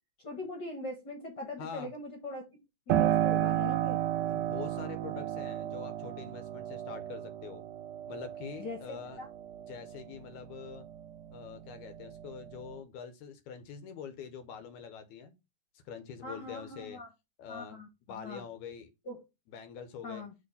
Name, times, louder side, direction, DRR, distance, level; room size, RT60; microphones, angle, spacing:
voice 1, 0.2-2.4 2.9-4.0 8.6-9.3 16.2-17.1 17.5-18.5 19.0-19.2 20.0-20.3, left 2 dB, 50° left, 1.3 m, -41 dB
voice 2, 1.6-1.9 4.3-7.7 8.1-9.2 9.7-10.9 11.3-15.3 15.9-17.0 17.4-17.8 18.1-18.9 19.5-20.2, left 7 dB, 75° left, 2.0 m, -45 dB
Piano, 2.9-11.3 11.7-12.8, right 12 dB, 80° right, 2.0 m, -33 dB
6.4 x 3.0 x 5.5 m
omnidirectional pair, 3.7 m